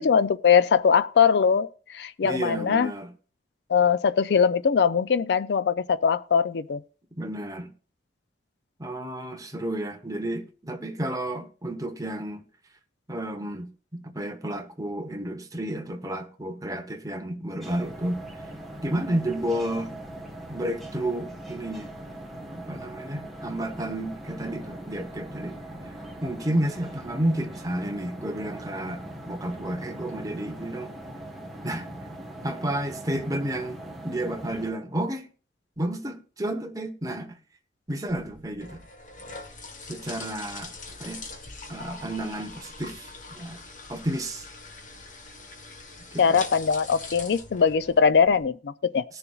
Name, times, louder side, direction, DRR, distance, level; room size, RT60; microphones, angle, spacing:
voice 1, 0.0-2.9 3.7-6.8 46.2-49.0, left 6 dB, 65° left, 0.4 m, -21 dB
voice 2, 2.2-3.1 7.2-7.7 8.8-12.4 13.1-18.2 18.8-19.9 20.5-21.9 22.4-25.6 26.2-30.9 31.6-31.9 32.4-33.8 34.0-35.3 35.8-37.3 37.9-38.8 39.9-40.7 41.0-41.2 41.7-43.6 43.9-44.5 46.1-46.4, right 1 dB, 20° right, 1.0 m, -31 dB
sound 1, 17.6-34.7, right 1 dB, ahead, 1.2 m, -41 dB
sound 2, 38.1-48.5, left 3 dB, 45° left, 1.3 m, -42 dB
20.0 x 6.8 x 2.4 m
head